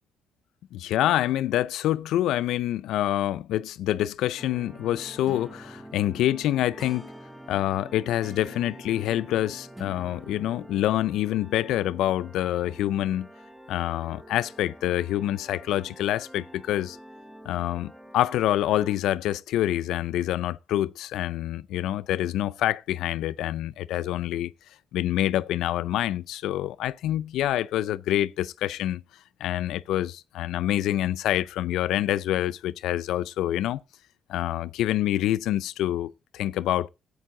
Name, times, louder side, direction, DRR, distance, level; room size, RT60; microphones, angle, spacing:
voice 1, 0.7-7.1 7.5-13.3 13.7-17.0 17.5-24.5 24.9-29.0 29.4-33.8 34.3-36.9, left 13 dB, 85° left, 0.5 m, -26 dB
sound 1, 4.4-19.0, right 1 dB, 5° right, 0.8 m, -46 dB
13.0 x 8.3 x 3.8 m
cardioid pair, 90°, 0 cm